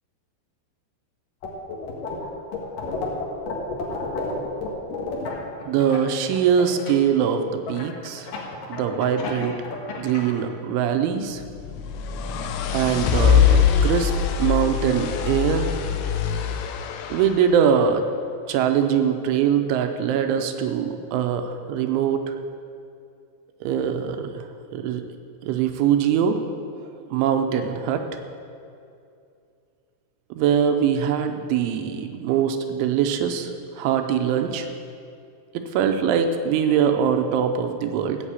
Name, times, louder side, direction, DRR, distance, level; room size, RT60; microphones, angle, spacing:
sound 1, 1.4-2.2 2.5-6.9 7.7-10.3, left 4 dB, 55° left, 2.7 m, -31 dB
voice 1, 5.7-8.3 8.7-9.6 10.0-11.4 12.7-14.1 14.4-15.7 17.1-18.1 18.5-22.3 23.6-24.5 24.7-25.0 25.4-26.4 27.1-28.0 30.3-34.7 35.5-38.2, right 8 dB, 85° right, 7 dB, 3.0 m, -22 dB
sound 2, 11.4-17.5, left 7 dB, 85° left, 3.3 m, -22 dB
14.5 x 6.4 x 8.4 m, 2.5 s
omnidirectional pair, 5.7 m